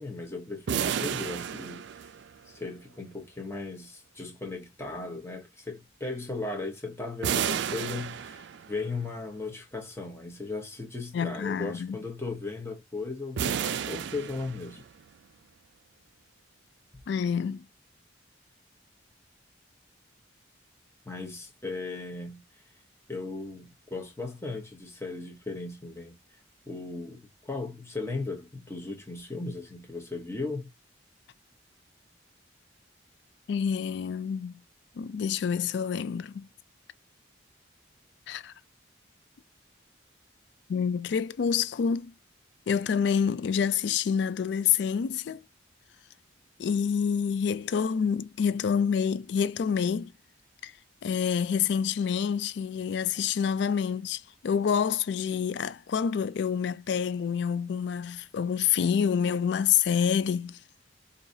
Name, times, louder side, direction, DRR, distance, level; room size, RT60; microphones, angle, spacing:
voice 1, 0.0-2.1 2.5-14.8 21.1-22.4 23.1-26.2 26.7-30.7, left 3 dB, 15° left, 1.0 m, -37 dB
sound 1, 0.7-2.5 7.2-8.9 13.4-15.0, right 8 dB, 65° right, 0.3 m, -32 dB
voice 2, 11.1-12.0 17.1-17.7 33.5-34.6 35.0-36.5 38.3-38.5 40.7-42.1 42.7-45.4 46.6-50.1 50.6-50.7 51.0-60.6, left 7 dB, 65° left, 0.3 m, -27 dB
4.8 x 2.7 x 2.6 m
head